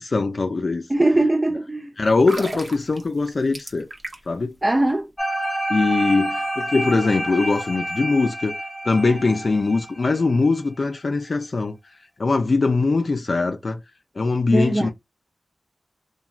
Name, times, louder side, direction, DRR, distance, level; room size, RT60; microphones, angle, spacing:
voice 1, 0.0-0.8 2.0-3.9 4.3-4.5 5.7-8.6 8.8-11.8 12.2-13.8 14.2-14.9, left 3 dB, 60° left, 0.4 m, -21 dB
voice 2, 0.9-1.9 4.6-5.1 14.5-14.9, right 1 dB, 25° right, 0.4 m, -20 dB
sound 1, 2.1-4.4 4.7-4.9, right 1 dB, 45° right, 0.8 m, -35 dB
sound 2, 5.2-10.3, right 1 dB, 15° left, 0.7 m, -28 dB
3.0 x 2.2 x 2.4 m
cardioid pair, 55°, 0 cm